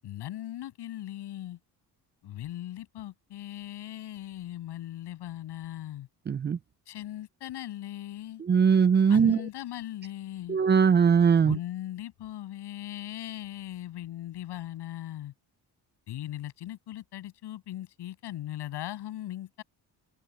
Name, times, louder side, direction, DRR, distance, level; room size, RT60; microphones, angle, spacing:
voice 1, 0.0-1.6 2.2-6.1 6.9-8.4 9.1-10.6 11.4-15.3 16.1-19.6, left 13 dB, 80° left, 7.6 m, -39 dB
voice 2, 6.3-6.6 8.5-9.4 10.5-11.6, right 6 dB, 25° right, 0.5 m, -20 dB
open air
cardioid pair, 140°, 40 cm